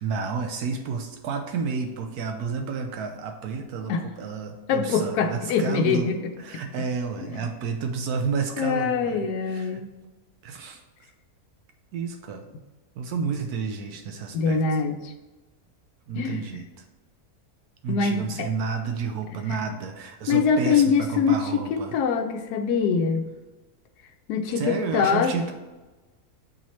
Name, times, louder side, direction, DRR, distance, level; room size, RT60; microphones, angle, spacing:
voice 1, 0.0-6.1 6.4-9.8 10.4-10.8 11.9-12.4 13.0-14.6 16.1-16.7 17.8-21.9 24.6-25.5, right 5 dB, 85° right, 5 dB, 1.1 m, -31 dB
voice 2, 4.7-6.6 7.2-7.4 8.6-9.9 14.3-15.1 16.1-16.6 17.9-18.5 19.5-19.6 20.3-23.3 24.3-25.5, left 5 dB, 90° left, 5 dB, 1.1 m, -24 dB
7.2 x 3.1 x 4.2 m, 1.2 s
omnidirectional pair, 1.6 m